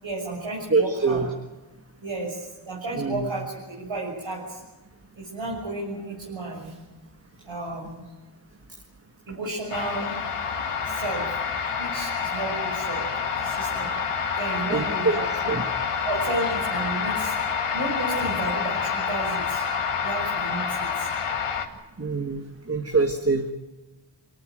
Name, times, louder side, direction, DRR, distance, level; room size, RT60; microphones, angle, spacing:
voice 1, 0.0-1.2 2.0-4.6 5.2-6.7 7.4-8.0 9.3-10.1 10.8-11.2 11.8-13.0 13.4-13.9 14.4-15.6 16.0-17.3 17.7-19.6 20.0-21.1, right 2 dB, 65° right, -4 dB, 6.8 m, -32 dB
voice 2, 0.7-1.3 2.9-3.3 14.7-15.2 15.5-15.6 22.0-23.5, right 4 dB, 30° right, 5 dB, 1.8 m, -24 dB
sound 1, 9.7-21.7, left 6 dB, 90° left, 2.2 m, -28 dB
25.0 x 17.5 x 9.2 m, 1.2 s
wide cardioid pair, 70°, 50 cm